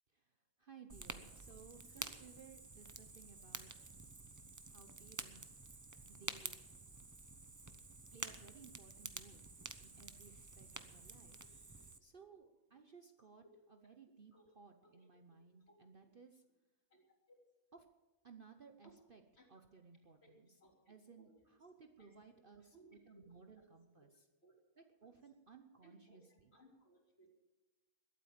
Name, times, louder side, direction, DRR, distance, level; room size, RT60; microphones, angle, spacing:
voice 1, 0.6-3.7 4.7-5.8 6.1-6.6 8.1-9.5 9.8-11.4 12.0-12.5 12.7-13.4 13.8-16.4 18.2-19.2 19.5-20.5 20.9-22.7 23.1-24.1 25.0-26.5, right 5 dB, 45° right, 6 dB, 0.9 m, -60 dB
Fire, 0.9-12.0, right 3 dB, 20° right, 0.5 m, -50 dB
voice 2, 11.4-11.9 12.1-12.8 14.3-14.5 14.8-15.4 15.7-16.2 16.9-17.4 18.8-18.9 19.4-19.6 20.2-20.3 20.6-21.5 22.0-22.1 22.6-23.7 24.4-24.5 25.0-25.2 25.8-27.3, right 1 dB, 45° left, 0 dB, 3.5 m, -68 dB
21.0 x 8.5 x 7.4 m, 1.1 s
omnidirectional pair, 1.5 m